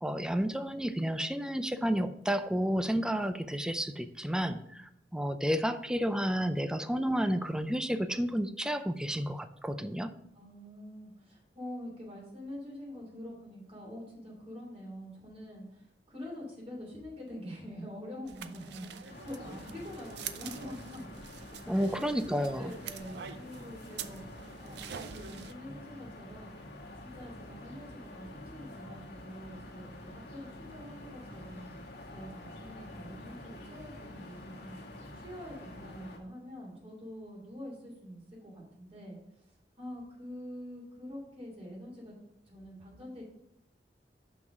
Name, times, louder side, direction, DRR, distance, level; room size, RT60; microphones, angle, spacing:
voice 1, 0.0-10.2 21.7-22.7, equal, 5° right, 10 dB, 0.4 m, -31 dB
voice 2, 10.3-21.1 21.7-22.0 22.5-26.5 27.0-31.7 32.1-34.8 35.1-42.1 42.4-43.2, left 1 dB, 35° right, -2 dB, 3.1 m, -45 dB
sound 1, 18.3-25.5, right 8 dB, 70° right, 0.5 m, -46 dB
sound 2, 19.1-36.2, left 1 dB, 65° left, 1.5 m, -47 dB
6.0 x 6.0 x 5.1 m, 0.78 s
head